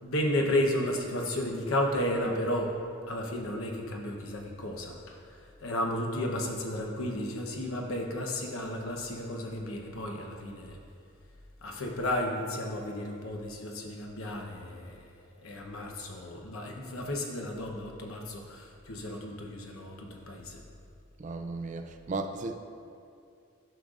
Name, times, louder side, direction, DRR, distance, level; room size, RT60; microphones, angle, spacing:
voice 1, 0.0-2.8 3.1-10.8 11.6-15.1 15.4-20.6, left 1 dB, 85° left, 1 dB, 1.0 m, -33 dB
voice 2, 21.2-22.6, right 3 dB, 35° right, 6 dB, 0.4 m, -35 dB
12.0 x 6.4 x 2.5 m, 2.4 s
head